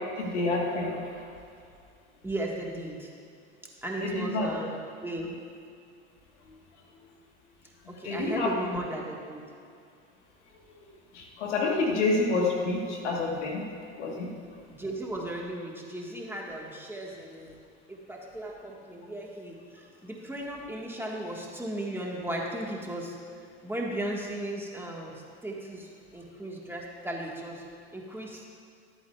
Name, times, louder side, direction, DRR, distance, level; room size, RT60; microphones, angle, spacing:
voice 1, 0.2-1.2 4.0-4.5 7.8-8.5 11.1-13.6 14.0-14.3, left 3 dB, 85° left, 0 dB, 1.4 m, -28 dB
voice 2, 2.2-3.1 3.8-5.4 7.9-9.4 14.7-17.6 17.9-23.2 23.6-27.6 27.9-28.4, right 1 dB, 5° right, -2 dB, 1.5 m, -36 dB
12.5 x 8.6 x 2.3 m, 2.4 s
hypercardioid pair, 80°, 34 cm